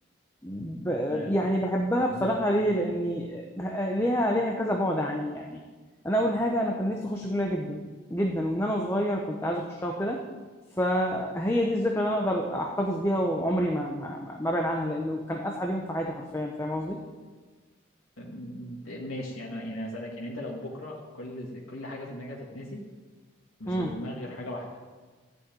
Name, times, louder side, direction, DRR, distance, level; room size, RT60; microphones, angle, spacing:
voice 1, 0.4-5.6 6.0-10.2 10.8-17.0 23.7-23.9, equal, 10° left, 1 dB, 0.9 m, -28 dB
voice 2, 2.0-2.3 18.2-22.8 23.6-24.8, left 1 dB, 85° left, -3 dB, 2.1 m, -38 dB
14.0 x 6.4 x 9.0 m, 1.4 s
head